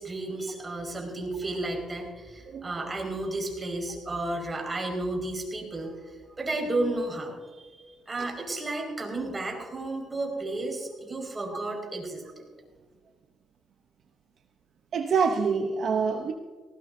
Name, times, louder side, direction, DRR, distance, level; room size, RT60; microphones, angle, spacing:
voice 1, 0.0-6.0 6.4-12.2, right 2 dB, 25° right, 5.1 m, -32 dB
voice 2, 2.5-2.9 8.2-8.3 14.9-16.3, right 5 dB, 60° right, 0.8 m, -26 dB
19.0 x 18.0 x 2.7 m
cardioid pair, 90°, 0 cm